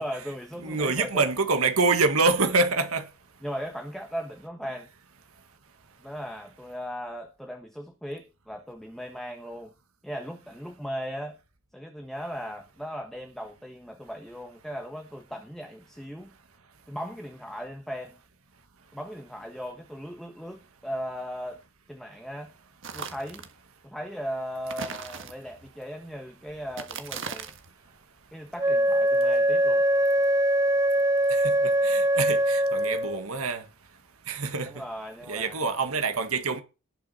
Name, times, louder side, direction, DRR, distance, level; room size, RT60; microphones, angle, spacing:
voice 1, 0.0-1.2 3.4-4.9 6.0-9.7 10.0-11.4 11.7-16.3 16.9-18.2 18.9-21.6 21.9-22.5 22.9-23.4 23.8-27.5 28.3-29.8 34.6-35.7, equal, ahead, 1.3 m, -37 dB
voice 2, 0.6-3.0 31.3-33.6 34.3-34.7 35.3-36.6, right 3 dB, 90° right, 1.7 m, -26 dB
sound 1, 22.8-23.5 24.7-25.7 26.7-27.7, right 5 dB, 60° right, 1.6 m, -38 dB
Wind instrument woodwind instrument, 28.6-33.2, right 1 dB, 15° right, 0.5 m, -22 dB
18.5 x 6.2 x 4.3 m
head